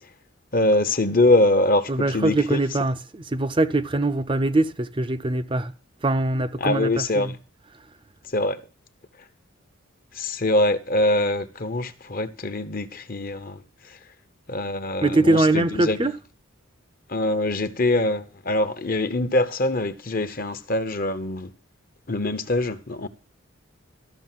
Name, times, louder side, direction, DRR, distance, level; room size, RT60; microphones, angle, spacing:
voice 1, 0.5-2.6 6.6-7.4 8.2-8.6 10.1-14.0 14.5-16.1 17.1-21.5 22.1-23.1, left 1 dB, 45° left, 1.0 m, -23 dB
voice 2, 1.9-5.7 6.0-7.3 15.0-16.2, right 2 dB, 25° right, 0.5 m, -22 dB
13.5 x 6.4 x 7.7 m
head